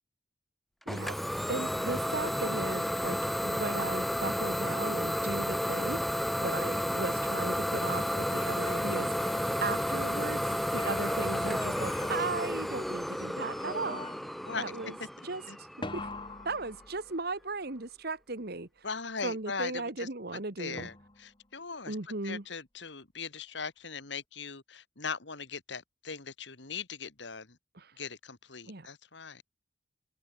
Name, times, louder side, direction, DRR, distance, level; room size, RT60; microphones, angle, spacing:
Idling / Domestic sounds home sounds, 0.9-16.4, equal, ahead, 0.3 m, -32 dB
voice 1, 0.9-1.2 1.5-6.0 6.4-9.3 9.6-14.3 14.6-15.0 15.2-15.4 15.8-16.1 16.5-18.7 19.2-20.9 21.9-22.4 27.8-27.9 28.7-28.9, right 3 dB, 55° right, 1.7 m, -37 dB
sound 1, 8.3-10.2 10.7-13.1 13.5-14.5 15.8-17.4 20.8-21.4, left 2 dB, 25° left, 2.5 m, -45 dB
voice 2, 14.4-15.1 15.5-15.6 18.8-22.0 22.2-27.6 28.0-29.4, left 5 dB, 65° left, 2.2 m, -40 dB
open air
head